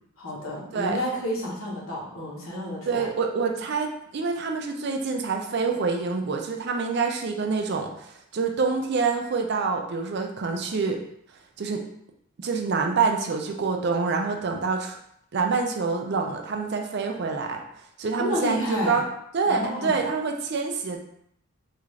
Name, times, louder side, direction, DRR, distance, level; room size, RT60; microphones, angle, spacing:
voice 1, 0.2-3.0 18.2-19.0 19.5-20.0, left 1 dB, 80° left, -4 dB, 1.1 m, -30 dB
voice 2, 2.9-11.0 11.6-11.8 12.4-14.9 15.3-17.6 18.0-19.1 19.3-21.0, right 4 dB, 50° right, 4 dB, 0.4 m, -26 dB
3.5 x 2.5 x 3.1 m, 0.72 s
head